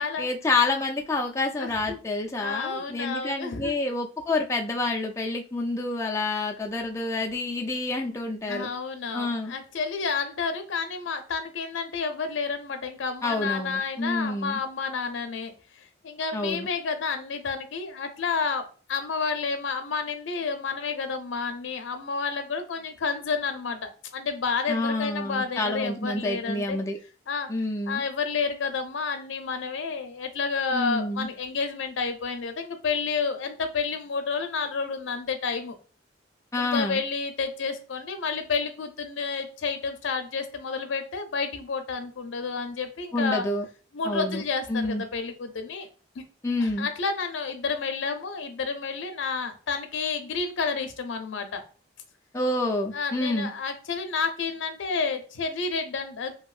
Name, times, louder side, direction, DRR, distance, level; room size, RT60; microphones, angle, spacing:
voice 1, 0.0-8.7 9.1-9.5 13.2-14.6 16.3-16.7 24.7-27.0 27.5-28.0 30.7-31.3 36.5-37.0 43.1-43.6 44.0-44.4 44.7-45.0 46.4-46.9 52.3-53.5, left 2 dB, 15° left, 1 dB, 0.4 m, -28 dB
voice 2, 1.6-2.0 2.4-3.8 8.5-18.6 18.9-26.8 27.3-27.5 27.9-35.7 36.6-43.5 43.9-45.9 46.1-46.2 46.6-51.6 52.9-56.3, left 5 dB, 85° left, 7 dB, 0.5 m, -30 dB
2.9 x 2.7 x 2.4 m, 0.38 s
head